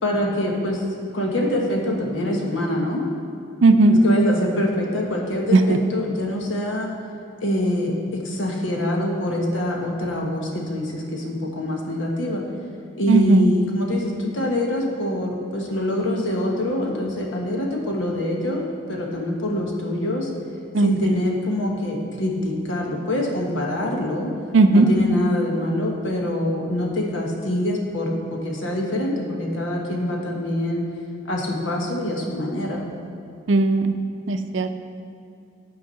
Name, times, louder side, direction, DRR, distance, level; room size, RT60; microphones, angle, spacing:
voice 1, 0.0-0.8 1.1-3.0 3.9-6.9 7.4-12.4 13.0-20.3 20.8-24.3 24.7-30.8 31.2-32.8, left 1 dB, 80° left, 0 dB, 1.3 m, -25 dB
voice 2, 3.6-4.0 5.5-5.8 13.1-13.4 20.7-20.9 24.5-24.9 33.5-33.9 34.3-34.7, right 3 dB, 75° right, 8 dB, 0.5 m, -16 dB
9.3 x 4.7 x 5.6 m, 2.6 s
head